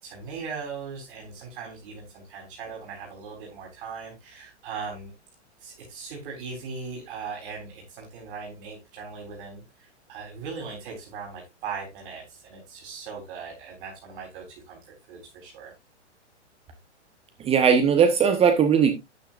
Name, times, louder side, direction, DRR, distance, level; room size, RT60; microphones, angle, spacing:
voice 1, 0.0-5.1 5.6-14.8 15.1-15.7, right 5 dB, 45° right, 3.9 m, -39 dB
voice 2, 17.4-18.9, right 7 dB, 15° right, 1.1 m, -19 dB
12.0 x 8.1 x 2.5 m
figure-of-eight pair, 110°, 35 cm